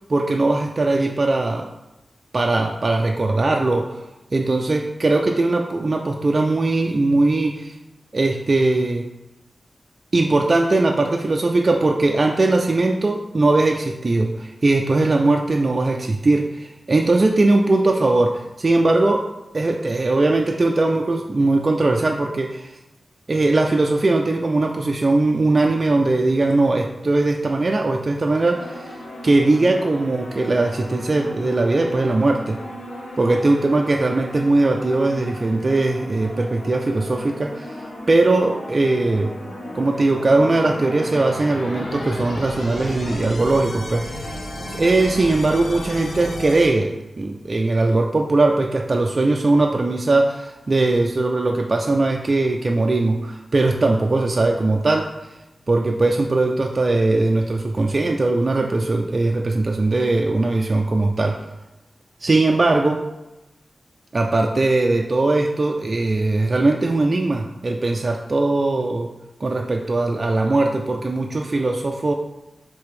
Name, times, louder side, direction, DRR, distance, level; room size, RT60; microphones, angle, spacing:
voice 1, 0.1-1.7 2.3-7.8 8.1-9.1 10.1-19.3 19.5-22.8 23.3-29.0 29.2-32.6 33.2-39.3 39.7-55.1 55.7-61.4 62.2-63.1 64.1-69.1 69.4-72.1, right 2 dB, 35° right, 2 dB, 0.3 m, -20 dB
sound 1, 28.5-46.7, left 1 dB, 80° left, 0.9 m, -34 dB
4.8 x 3.4 x 3.2 m, 0.98 s
wide cardioid pair, 145°, 0 cm